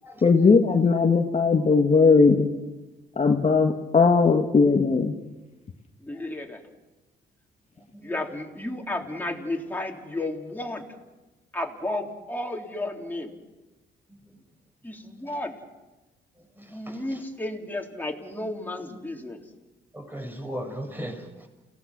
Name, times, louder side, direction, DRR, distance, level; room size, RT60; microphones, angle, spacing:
voice 1, 0.2-2.5 3.2-5.1, left 4 dB, 35° left, 3 dB, 1.8 m, -19 dB
voice 2, 6.0-6.6 8.0-10.9 11.5-13.3 14.8-15.6 16.7-19.4, left 1 dB, 10° left, 0 dB, 3.9 m, -33 dB
voice 3, 7.9-8.3 14.1-14.4 15.3-15.4 16.6-17.2 19.9-21.5, equal, 10° right, 3 dB, 6.6 m, -38 dB
29.5 x 18.5 x 6.2 m, 1.1 s
cardioid pair, 90°, 20 cm